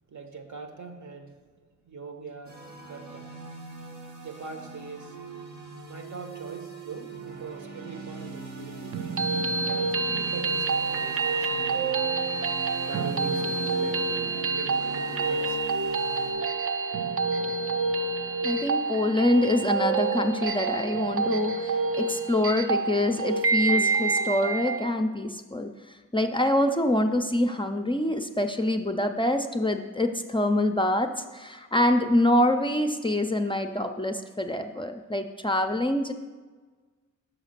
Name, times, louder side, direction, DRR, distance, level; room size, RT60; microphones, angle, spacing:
voice 1, 0.1-1.4 1.8-2.6 2.9-3.3 4.2-5.2 5.8-9.0 9.6-11.9 12.8-15.6, right 4 dB, 65° right, 5 dB, 1.0 m, -41 dB
sound 1, 2.4-16.3, right 3 dB, 80° right, 1.8 m, -41 dB
sound 2, 8.9-24.9, right 4 dB, 45° right, 0.5 m, -27 dB
voice 2, 18.4-25.7 26.1-36.1, left 1 dB, 15° left, 6 dB, 0.4 m, -25 dB
6.4 x 4.9 x 6.6 m, 1.4 s
wide cardioid pair, 75°, 32 cm